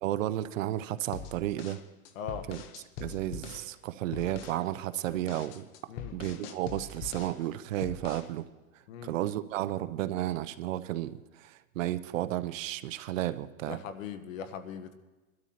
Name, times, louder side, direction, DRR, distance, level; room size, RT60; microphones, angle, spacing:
voice 1, 0.0-1.8 2.5-2.6 3.0-5.6 6.1-8.4 9.0-13.8, right 14 dB, 65° right, 13 dB, 0.7 m, -33 dB
sound 1, 1.1-3.7 4.1-4.6 4.9-7.4 7.8-8.3, left 7 dB, 30° left, 0.7 m, -43 dB
voice 2, 13.6-14.9, left 7 dB, 70° left, 10 dB, 1.2 m, -40 dB
22.5 x 12.5 x 2.9 m, 1.2 s
supercardioid pair, 150°, 42 cm